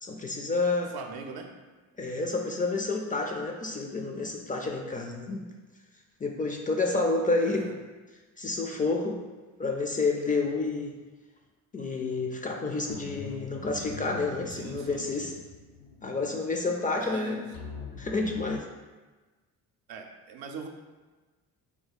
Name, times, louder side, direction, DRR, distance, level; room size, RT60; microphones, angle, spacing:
voice 1, 0.0-0.9 2.0-5.5 6.2-7.7 8.4-9.2 9.6-10.9 11.7-15.3 16.0-17.5 18.0-18.6, left 3 dB, 20° left, 2 dB, 0.4 m, -29 dB
voice 2, 0.9-1.5 7.5-7.7 14.5-15.1 16.9-17.4 19.9-20.7, right 5 dB, 70° right, 3 dB, 0.6 m, -41 dB
sound 1, 12.9-18.6, left 4 dB, 85° left, 0.7 m, -44 dB
2.8 x 2.2 x 4.0 m, 1.3 s
supercardioid pair, 60°, 39 cm